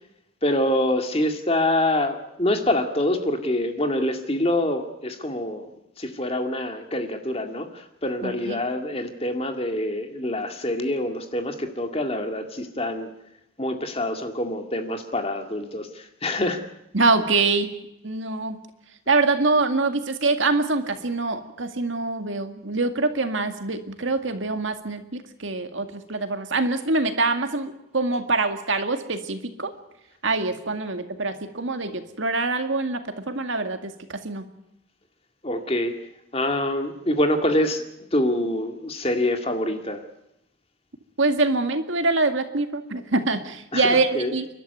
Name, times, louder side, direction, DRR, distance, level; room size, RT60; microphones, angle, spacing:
voice 1, 0.4-5.7 6.0-13.1 13.6-16.6 35.4-35.9 36.3-37.8 38.1-40.0 43.7-44.3, left 1 dB, 30° left, 5 dB, 2.1 m, -25 dB
voice 2, 8.2-8.6 16.9-17.7 18.0-18.6 19.1-29.7 30.2-34.4 41.2-44.5, right 3 dB, 70° right, 7 dB, 2.1 m, -24 dB
30.0 x 12.0 x 9.4 m, 0.84 s
head